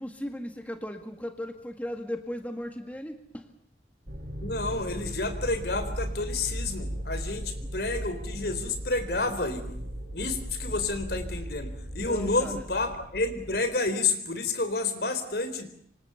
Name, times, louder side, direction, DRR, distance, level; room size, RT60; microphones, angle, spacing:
voice 1, 0.0-3.5 7.6-7.7 12.0-12.7, equal, 10° left, 6 dB, 1.8 m, -37 dB
sound 1, 4.1-13.7, equal, 60° right, 6.0 m, -37 dB
voice 2, 4.4-9.8 10.1-11.7 11.9-15.7, left 3 dB, 60° left, 10 dB, 4.0 m, -30 dB
26.5 x 26.5 x 7.1 m, 0.65 s
head